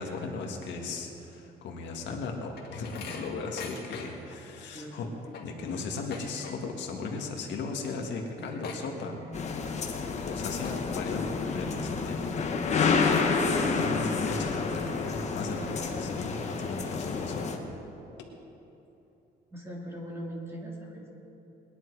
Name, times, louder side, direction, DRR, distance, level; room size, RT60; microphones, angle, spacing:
voice 1, 0.0-5.1 5.4-9.1 9.9-12.5 12.8-17.4, left 4 dB, 80° left, 1 dB, 1.8 m, -37 dB
sound 1, 1.9-4.4 4.8-4.9 5.1-6.9 7.1-7.5 7.8-7.9 8.1-9.5 10.0-10.2 10.6-11.1 11.6-11.7 12.3-12.4 12.8-13.5 13.9-14.0 14.7-14.8 15.2-16.1, left 5 dB, 60° left, 1.9 m, -44 dB
voice 2, 4.7-5.2 8.4-9.3 19.5-21.1, right 1 dB, 15° right, -2 dB, 2.2 m, -41 dB
sound 2, 9.3-17.6, left 4 dB, 40° left, 1.1 m, -29 dB
21.0 x 10.5 x 4.8 m, 2.9 s
cardioid pair, 165°, 18 cm